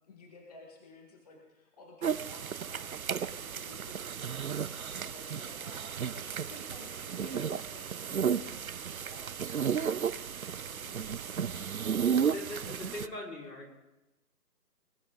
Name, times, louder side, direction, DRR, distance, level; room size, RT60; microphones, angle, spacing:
voice 1, 0.1-11.4, left 2 dB, 25° left, 0 dB, 1.9 m, -54 dB
sound 1, 2.0-13.1, right 7 dB, 60° right, 0.7 m, -33 dB
voice 2, 12.3-13.7, left 2 dB, 85° left, -2 dB, 5.6 m, -41 dB
20.5 x 12.0 x 4.0 m, 0.99 s
hypercardioid pair, 170°, 48 cm